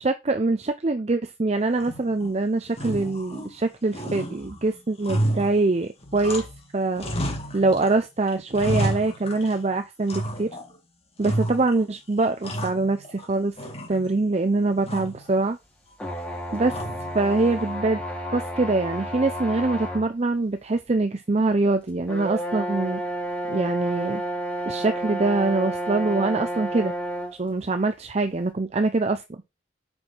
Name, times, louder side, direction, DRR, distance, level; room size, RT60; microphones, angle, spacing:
voice 1, 0.0-6.5 6.7-7.0 7.5-10.5 11.2-13.5 13.9-15.6 16.5-16.7 17.1-18.0 18.3-23.0 23.5-24.2 24.7-26.9 27.4-29.2, right 3 dB, 35° right, 8 dB, 0.5 m, -24 dB
sound 1, 1.8-2.4 2.7-3.7 3.9-6.7 7.0-8.0 8.3-9.7 10.1-10.8 11.2-11.9 12.2-13.3 13.6-14.3 14.8-15.3 16.7-17.2, right 1 dB, 30° left, 1.8 m, -31 dB
sound 2, 16.0-20.1 20.7-20.8 22.1-27.4, right 1 dB, 5° left, 2.3 m, -31 dB
6.1 x 4.8 x 5.6 m, 0.24 s
head